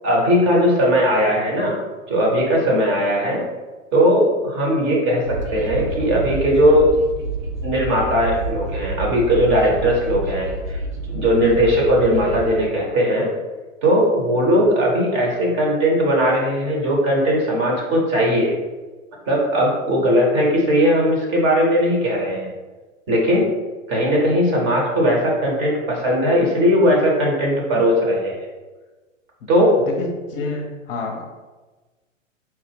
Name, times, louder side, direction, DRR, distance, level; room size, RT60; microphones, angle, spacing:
voice 1, 0.0-3.4 3.9-7.0 7.6-10.8 11.1-13.3 13.8-18.6 19.3-22.5 23.1-23.5 23.9-28.4 29.5-29.8, equal, 30° right, -2 dB, 1.0 m, -18 dB
Train, 5.2-12.5, right 2 dB, 90° right, 0.7 m, -29 dB
voice 2, 29.9-31.2, left 3 dB, 45° left, 1 dB, 0.7 m, -28 dB
4.5 x 2.1 x 3.4 m, 1.2 s
figure-of-eight pair, 105°, 40 cm